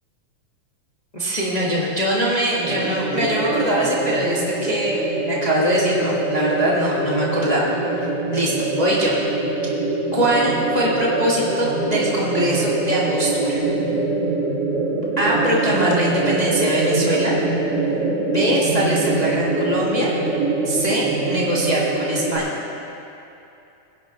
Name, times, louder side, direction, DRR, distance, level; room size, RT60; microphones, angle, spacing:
voice 1, 1.1-7.7 8.3-9.2 10.1-13.6 15.2-17.3 18.2-20.1 20.6-22.5, equal, 65° left, -6 dB, 0.4 m, -22 dB
sound 1, 2.6-22.4, right 3 dB, 40° right, 1.6 m, -23 dB
23.0 x 11.0 x 3.1 m, 2.8 s
omnidirectional pair, 3.7 m